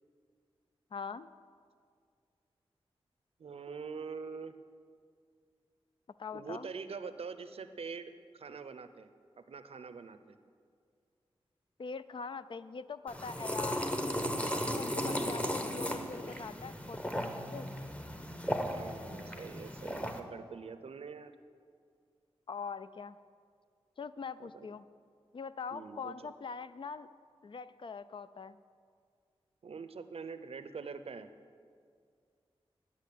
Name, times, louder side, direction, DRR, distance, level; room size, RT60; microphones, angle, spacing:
voice 1, 0.9-1.3 6.2-6.7 11.8-14.0 14.5-17.7 22.5-23.2 24.0-24.8 25.3-27.1 27.4-28.6, left 5 dB, 50° left, 14 dB, 0.4 m, -43 dB
voice 2, 3.4-4.5 6.3-9.1 9.4-10.4 18.5-21.3 24.4-24.7 25.7-26.3 29.6-31.3, right 5 dB, 70° right, 11 dB, 0.6 m, -44 dB
sound 1, 13.1-20.2, equal, 10° left, 0.9 m, -36 dB
9.9 x 6.3 x 8.5 m, 2.2 s
wide cardioid pair, 70°, 10 cm